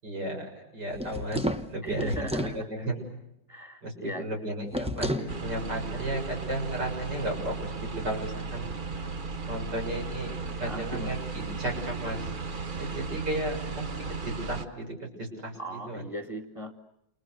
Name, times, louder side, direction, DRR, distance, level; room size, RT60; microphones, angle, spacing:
voice 1, 0.0-3.0 3.8-8.7 9.5-10.3 10.6-12.3 12.8-13.9 14.2-16.0, right 1 dB, 65° right, 2 dB, 7.8 m, -34 dB
sound 1, 0.9-2.6 4.7-5.3, equal, 5° right, 0.9 m, -31 dB
voice 2, 1.8-2.9 3.5-4.2 10.3-11.2 15.6-16.7, right 1 dB, 15° left, 4 dB, 2.0 m, -39 dB
sound 2, 5.3-14.7, right 4 dB, 35° right, 1.0 m, -36 dB
30.0 x 29.0 x 6.8 m, 0.86 s
omnidirectional pair, 2.0 m